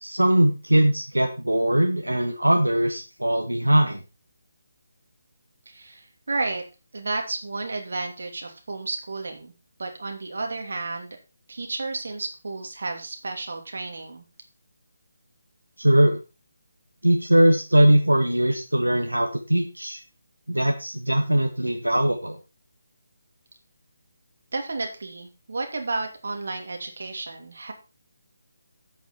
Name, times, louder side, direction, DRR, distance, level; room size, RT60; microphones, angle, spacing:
voice 1, 0.0-4.0 15.8-16.2 17.0-20.0 20.5-22.4, right 1 dB, 80° right, 4 dB, 1.5 m, -21 dB
voice 2, 5.7-6.6 6.9-9.5 9.8-11.2 11.5-14.2 24.5-27.7, right 3 dB, 55° right, 4 dB, 2.8 m, -32 dB
10.5 x 8.3 x 4.3 m, 0.30 s
figure-of-eight pair, 150°, 0 cm